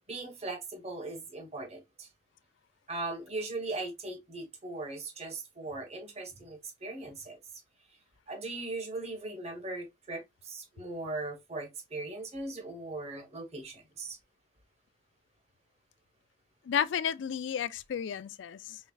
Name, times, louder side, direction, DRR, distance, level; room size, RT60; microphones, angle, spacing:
voice 1, 0.1-2.1 2.9-7.4 8.3-14.2, right 2 dB, 35° right, 1.2 m, -39 dB
voice 2, 16.7-18.8, left 8 dB, 80° left, 0.3 m, -32 dB
4.6 x 3.2 x 2.3 m
head